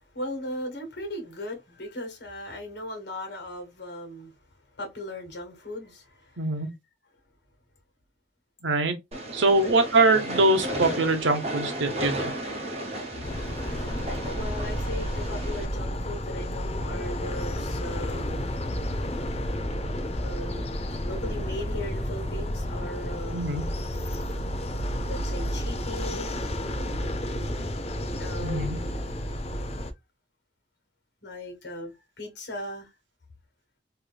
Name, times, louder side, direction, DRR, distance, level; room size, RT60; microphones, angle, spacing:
voice 1, 0.1-4.3 4.8-6.6 9.6-9.8 14.3-18.5 20.2-20.7 21.0-23.6 25.1-26.3 28.2-29.3 29.7-29.8 31.2-32.9, left 1 dB, 60° left, 1.7 m, -38 dB
voice 2, 6.4-6.7 8.6-9.0 9.3-12.3 23.3-23.6 28.4-28.8, right 2 dB, 70° right, 0.9 m, -23 dB
Train, 9.1-15.6, right 1 dB, 35° right, 0.9 m, -34 dB
sound 1, 13.2-29.9, equal, 35° left, 0.5 m, -31 dB
3.4 x 2.9 x 2.3 m
head